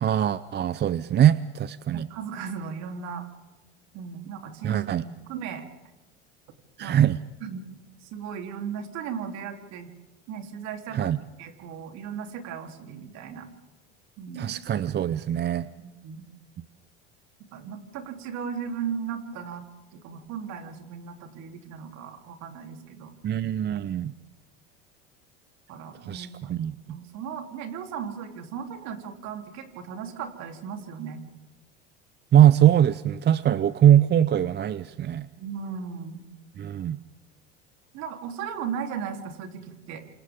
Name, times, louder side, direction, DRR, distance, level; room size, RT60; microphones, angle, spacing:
voice 1, 0.0-2.1 4.6-5.0 6.8-7.2 10.9-11.2 14.3-15.7 23.2-24.1 26.0-27.0 32.3-35.3 36.6-37.0, right 10 dB, 35° right, 16 dB, 0.7 m, -22 dB
voice 2, 1.9-3.3 3.9-5.7 6.8-7.0 7.4-7.6 8.0-9.9 10.3-13.5 14.2-14.5 15.8-16.2 17.5-19.7 19.9-23.1 25.7-31.2 35.4-36.2 37.9-40.0, right 7 dB, 60° right, 4 dB, 3.6 m, -36 dB
28.5 x 27.5 x 3.8 m, 1.1 s
hypercardioid pair, 85°, 31 cm